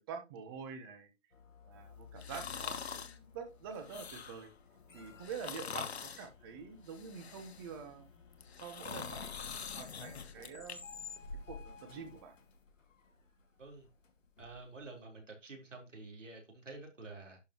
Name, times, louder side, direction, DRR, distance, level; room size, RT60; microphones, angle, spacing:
voice 1, 0.1-1.1 1.6-4.5 4.9-8.1 8.6-10.8 11.5-12.4, right 6 dB, 20° right, 1.1 m, -46 dB
sound 1, 1.3-15.0, left 4 dB, 80° left, 2.2 m, -53 dB
sound 2, 2.2-3.2 3.7-4.5 5.2-6.3 6.9-7.8 8.3-10.8 11.2-11.3, left 6 dB, 55° left, 1.3 m, -44 dB
voice 2, 14.4-17.4, right 3 dB, 75° right, 4.0 m, -49 dB
11.5 x 5.2 x 3.0 m
figure-of-eight pair, 145°, 37 cm